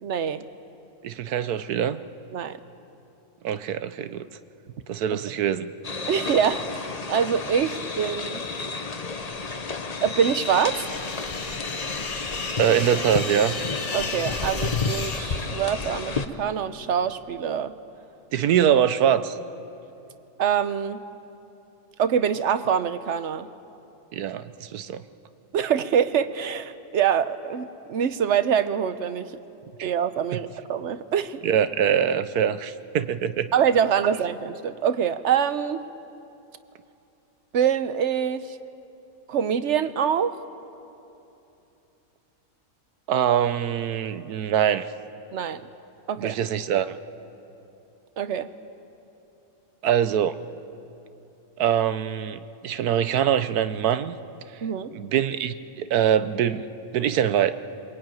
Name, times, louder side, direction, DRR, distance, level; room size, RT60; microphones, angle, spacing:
voice 1, 0.0-0.4 2.3-2.6 5.1-5.2 6.1-8.4 10.0-10.9 13.9-17.7 20.4-21.0 22.0-23.5 25.5-29.3 29.8-31.4 33.5-35.8 37.5-38.6 39.3-40.4 45.3-45.6 46.1-46.4 48.2-48.5 54.6-54.9, right 8 dB, 55° right, 12 dB, 1.0 m, -25 dB
voice 2, 1.0-2.0 3.4-4.2 4.9-5.7 12.6-13.6 18.3-19.4 24.1-25.0 29.8-29.9 31.4-33.5 43.1-44.9 46.2-46.9 49.8-50.3 51.6-54.2 54.9-56.6 56.9-57.5, right 9 dB, 80° right, 12 dB, 1.3 m, -23 dB
sound 1, 5.8-16.3, left 4 dB, 30° left, 0.9 m, -31 dB
sound 2, 10.2-15.2, left 3 dB, 65° left, 2.5 m, -35 dB
23.0 x 22.0 x 9.2 m, 2.9 s
omnidirectional pair, 1.6 m